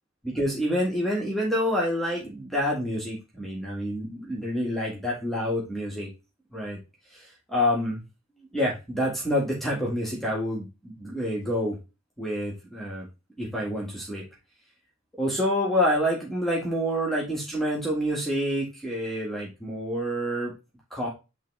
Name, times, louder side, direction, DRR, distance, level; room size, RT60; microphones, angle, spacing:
voice 1, 0.2-6.1 6.5-6.8 7.1-8.0 8.5-11.8 12.2-13.1 13.4-14.2 15.2-20.5 20.9-21.1, equal, ahead, -4 dB, 1.7 m, -27 dB
8.9 x 3.6 x 3.2 m, 0.27 s
head